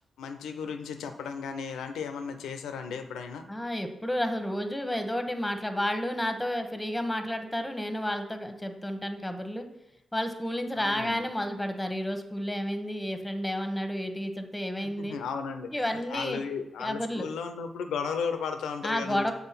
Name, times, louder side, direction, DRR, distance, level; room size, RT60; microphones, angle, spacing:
voice 1, 0.2-3.5 10.7-11.2 14.8-19.3, left 6 dB, 80° left, 7 dB, 0.6 m, -35 dB
voice 2, 3.5-9.7 10.1-15.1 15.7-16.4 16.8-17.3 18.8-19.3, equal, 10° left, 6 dB, 1.1 m, -31 dB
7.0 x 3.7 x 5.8 m, 0.89 s
supercardioid pair, 40°, 0 cm